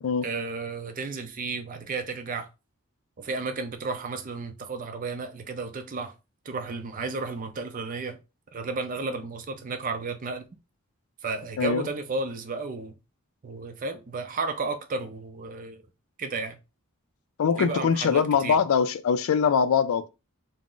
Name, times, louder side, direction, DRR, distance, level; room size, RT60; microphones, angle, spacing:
voice 1, 0.2-2.5 3.2-6.1 6.5-8.2 8.5-10.4 11.2-13.0 13.4-15.8 16.2-16.6 17.6-18.6, right 3 dB, 40° right, 0.4 m, -33 dB
voice 2, 11.6-11.9 17.4-20.1, left 6 dB, 80° left, 0.3 m, -23 dB
2.4 x 2.0 x 3.6 m
head